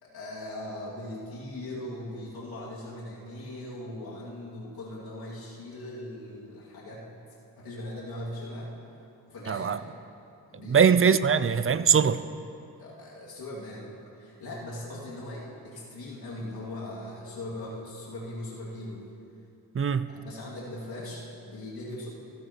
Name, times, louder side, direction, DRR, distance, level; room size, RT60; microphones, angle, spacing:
voice 1, 0.0-7.1 7.6-8.7 9.3-9.8 10.5-10.9 12.8-19.0 20.1-22.1, left 1 dB, 70° left, -6 dB, 2.5 m, -39 dB
voice 2, 9.5-9.8 10.7-12.2 19.7-20.1, right 7 dB, 35° right, 14 dB, 0.5 m, -21 dB
15.5 x 15.5 x 3.0 m, 2.6 s
cardioid pair, 50°, 38 cm